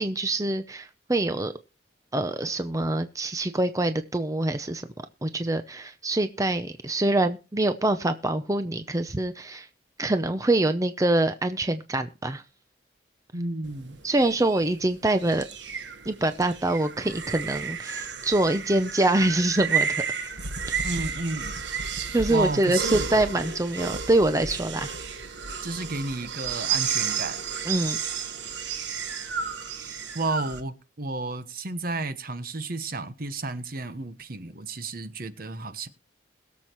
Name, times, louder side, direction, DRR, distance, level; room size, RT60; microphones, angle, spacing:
voice 1, 0.0-1.5 2.1-4.9 5.2-9.7 10.0-12.4 14.0-15.4 16.1-20.3 20.7-20.8 22.1-25.0 27.7-28.1 29.8-30.0, right 2 dB, 20° right, 0.6 m, -25 dB
voice 2, 13.3-14.0 20.8-21.6 22.3-23.1 25.6-27.4 30.1-35.9, right 2 dB, 50° right, 1.1 m, -32 dB
sound 1, 13.6-30.6, right 6 dB, 70° right, 1.3 m, -32 dB
21.5 x 7.4 x 3.0 m
head